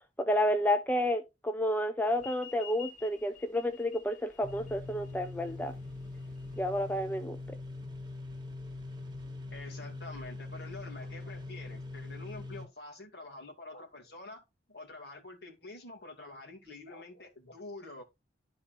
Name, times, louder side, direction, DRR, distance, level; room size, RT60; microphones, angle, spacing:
voice 1, 0.2-5.7 6.6-7.4, left 1 dB, 10° left, 0.5 m, -30 dB
sound 1, 2.1-7.2, left 8 dB, 45° left, 2.6 m, -51 dB
sound 2, 4.4-12.6, left 2 dB, 25° right, 1.5 m, -42 dB
voice 2, 9.5-14.4 14.7-18.0, left 2 dB, 65° left, 2.4 m, -47 dB
12.5 x 4.2 x 2.5 m
head